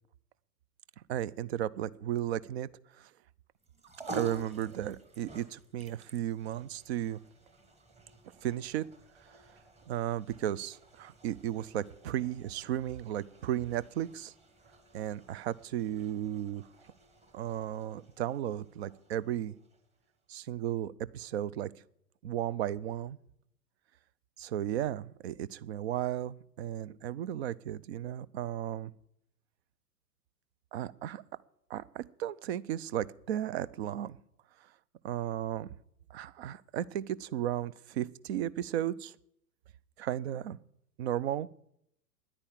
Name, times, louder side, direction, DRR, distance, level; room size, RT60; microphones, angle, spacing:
voice 1, 1.1-2.7 3.0-3.1 4.1-7.2 8.4-8.9 9.9-14.3 14.9-16.6 17.3-19.5 20.3-21.7 22.2-23.2 24.4-28.9 30.7-31.2 31.7-34.2 35.0-35.7 36.1-39.1 40.0-40.6 41.0-41.5, right 11 dB, 45° right, 21 dB, 0.6 m, -34 dB
sound 1, 3.6-20.1, right 2 dB, 15° right, 1.5 m, -51 dB
10.0 x 9.8 x 8.9 m, 0.74 s
figure-of-eight pair, 110°, 47 cm